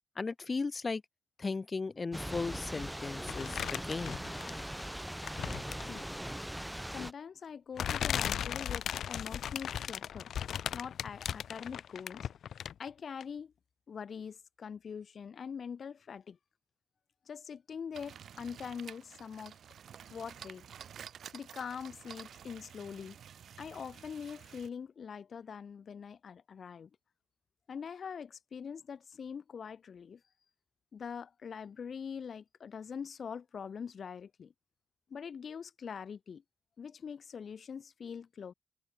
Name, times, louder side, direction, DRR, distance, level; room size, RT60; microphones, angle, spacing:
voice 1, 0.1-1.0 1.4-4.2, left 4 dB, 30° left, 1.4 m, -36 dB
Thunder / Rain, 2.1-7.1, equal, 5° right, 1.3 m, -40 dB
sound 1, 3.3-4.8 5.2-6.0 7.0-7.1 7.8-12.9 13.2-13.3, left 9 dB, 80° left, 0.9 m, -37 dB
voice 2, 6.9-10.3 10.7-12.3 12.8-13.5 13.9-16.4 17.3-19.5 20.1-20.7 21.3-23.2 23.6-26.9 27.7-30.2 30.9-34.5 35.1-36.4 36.8-38.5, left 6 dB, 55° left, 3.9 m, -43 dB
sound 2, 17.9-24.7, right 8 dB, 75° right, 7.2 m, -51 dB
wide cardioid pair, 115°, 0 cm